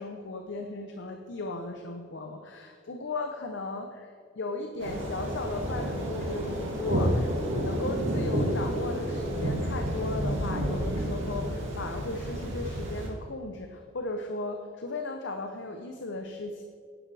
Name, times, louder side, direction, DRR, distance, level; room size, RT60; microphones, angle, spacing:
voice 1, 0.0-16.6, left 2 dB, 60° left, 5 dB, 0.7 m, -36 dB
sound 1, 4.8-13.1, equal, 65° right, 2.7 m, -30 dB
11.0 x 11.0 x 3.4 m, 2.3 s
head